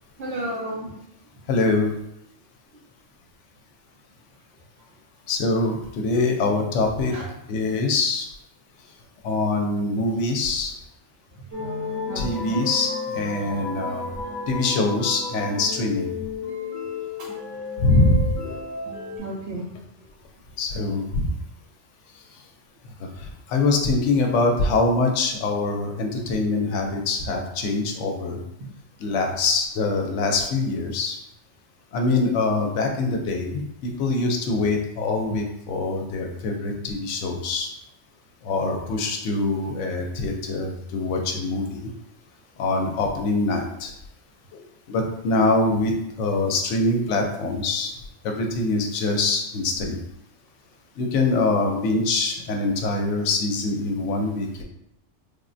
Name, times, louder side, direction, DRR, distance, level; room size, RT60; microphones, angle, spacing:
voice 1, 0.2-0.9 7.1-7.3 11.4-11.5 12.1-12.6 17.2-17.7 18.4-18.6 19.1-19.7 20.0-20.1, right 1 dB, 65° right, -3 dB, 1.0 m, -33 dB
voice 2, 1.5-1.9 5.3-7.2 7.5-8.3 9.2-10.7 12.1-14.1 14.5-16.1 17.8-18.3 20.6-21.3 23.0-28.4 29.0-31.2 31.9-37.7 38.4-41.9 42.6-43.9 44.5-44.6 44.9-47.9 48.2-50.0 51.0-54.6, left 3 dB, 75° left, 3 dB, 0.9 m, -24 dB
sound 1, 11.5-19.2, left 4 dB, 25° right, 0.3 m, -33 dB
3.4 x 2.1 x 2.5 m, 0.82 s
omnidirectional pair, 1.3 m